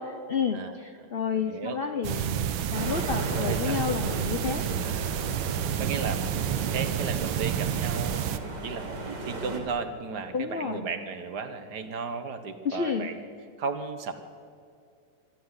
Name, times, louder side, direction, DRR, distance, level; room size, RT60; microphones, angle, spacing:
voice 1, 0.0-4.6 10.3-10.9 12.6-13.1, left 6 dB, 65° left, 6 dB, 0.5 m, -30 dB
voice 2, 1.3-1.8 3.4-3.8 4.8-5.3 5.8-13.2 13.6-14.1, right 5 dB, 55° right, 9 dB, 1.7 m, -35 dB
sound 1, 2.0-8.4, right 9 dB, 75° right, 1.6 m, -29 dB
sound 2, 2.7-9.6, right 1 dB, 90° right, 3.9 m, -37 dB
24.0 x 13.0 x 9.7 m, 2.3 s
omnidirectional pair, 2.3 m